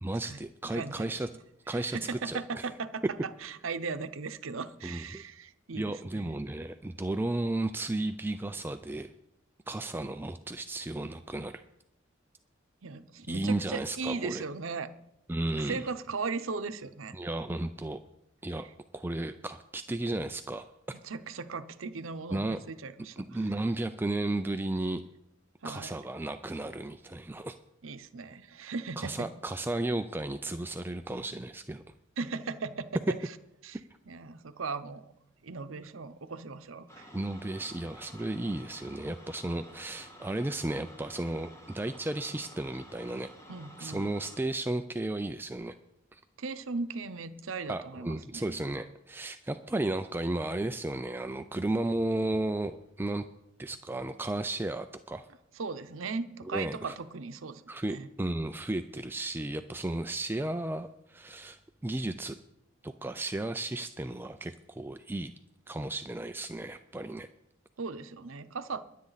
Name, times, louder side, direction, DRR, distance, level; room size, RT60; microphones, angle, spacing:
voice 1, 0.0-1.3 1.7-2.0 2.2-2.7 4.8-5.2 5.7-9.1 9.7-11.6 13.3-14.4 15.3-15.9 17.1-18.0 18.4-18.7 18.9-21.0 22.3-22.6 23.2-25.0 25.6-27.6 29.0-31.8 37.1-43.3 43.8-45.8 46.1-46.2 47.7-53.2 53.6-55.3 56.5-57.0 57.7-62.4 62.8-65.3 65.7-67.3, right 2 dB, 10° right, 9 dB, 0.4 m, -34 dB
voice 2, 0.7-1.2 1.7-3.0 3.4-6.4 12.8-14.9 15.6-17.1 21.0-23.2 25.6-25.9 27.8-29.3 32.2-33.2 33.6-33.8 34.1-35.1 35.4-37.1 43.5-44.1 46.4-48.6 55.6-57.6 57.9-58.1 67.8-68.8, right 4 dB, 85° right, 11 dB, 0.8 m, -37 dB
sound 1, 36.9-44.4, equal, 15° left, 1.7 m, -52 dB
22.0 x 8.5 x 4.0 m, 0.83 s
head